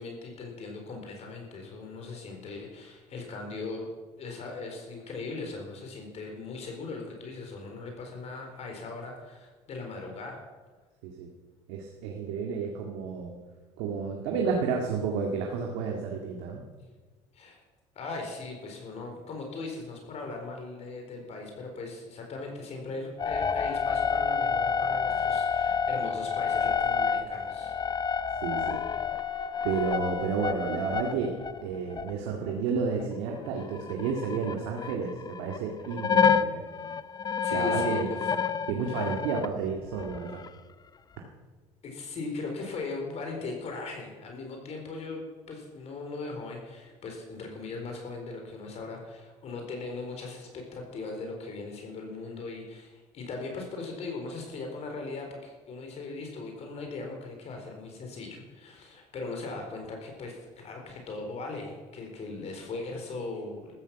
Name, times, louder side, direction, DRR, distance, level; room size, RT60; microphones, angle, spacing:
voice 1, 0.0-3.9 4.2-10.4 17.3-17.6 18.0-27.8 37.4-38.3 38.9-39.1 41.8-45.2 45.5-63.7, left 3 dB, 50° left, 3 dB, 4.1 m, -39 dB
voice 2, 11.7-13.3 13.8-16.6 28.4-28.8 29.6-31.3 31.6-36.6 37.5-38.1 38.7-40.4, right 5 dB, 85° right, 1 dB, 2.0 m, -31 dB
sound 1, 23.2-33.1 33.3-35.6 35.8-39.5 39.9-40.5, left 6 dB, 30° left, 0.7 m, -29 dB
14.5 x 13.5 x 6.0 m, 1.3 s
supercardioid pair, 100°, 14 cm